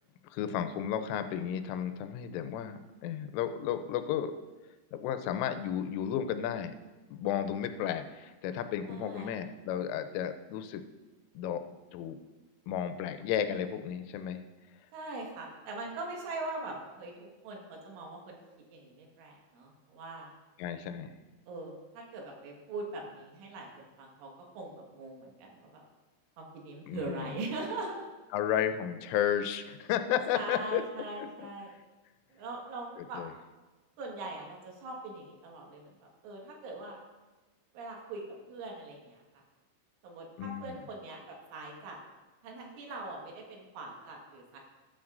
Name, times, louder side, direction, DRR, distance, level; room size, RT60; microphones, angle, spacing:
voice 1, 0.3-4.3 4.9-6.7 7.1-10.8 11.4-11.6 11.9-12.2 12.7-14.4 20.6-21.2 26.8-27.3 28.3-30.8 31.4-31.5 33.0-33.3 40.4-40.8, left 9 dB, 90° left, 9 dB, 3.2 m, -33 dB
voice 2, 8.9-9.3 14.9-18.4 18.7-20.3 21.5-25.8 26.4-28.1 30.3-31.7 32.3-33.2 34.0-36.0 36.2-37.0 37.7-39.2 40.0-42.0 42.4-44.6, right 2 dB, 80° right, 0 dB, 4.1 m, -41 dB
13.0 x 12.5 x 2.6 m, 1.2 s
omnidirectional pair, 5.6 m